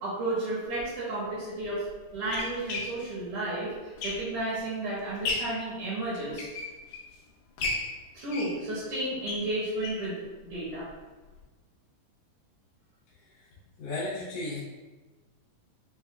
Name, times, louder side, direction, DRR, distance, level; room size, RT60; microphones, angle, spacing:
voice 1, 0.0-6.5 8.1-10.9, right 1 dB, 65° right, -9 dB, 2.6 m, -32 dB
sound 1, 0.7-0.8 1.6-4.6 5.0-5.6 6.2-7.1 7.6-10.1 10.5-10.6 10.9-11.0 11.3-11.4, left 3 dB, 85° left, 1.6 m, -35 dB
voice 2, 13.8-14.6, left 2 dB, 65° left, -9 dB, 1.7 m, -34 dB
6.8 x 2.5 x 2.3 m, 1.2 s
omnidirectional pair, 4.1 m